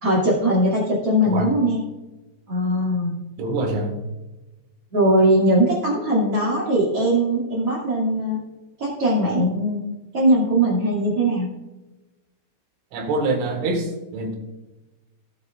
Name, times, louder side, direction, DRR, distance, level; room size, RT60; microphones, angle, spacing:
voice 1, 0.0-1.8 2.5-3.2 4.9-8.4 8.8-9.8 10.1-11.5, right 1 dB, 40° right, -3 dB, 2.4 m, -20 dB
voice 2, 3.4-4.0 12.9-14.4, right 2 dB, 75° right, 3 dB, 4.1 m, -25 dB
18.0 x 8.2 x 2.4 m, 1.1 s
omnidirectional pair, 5.7 m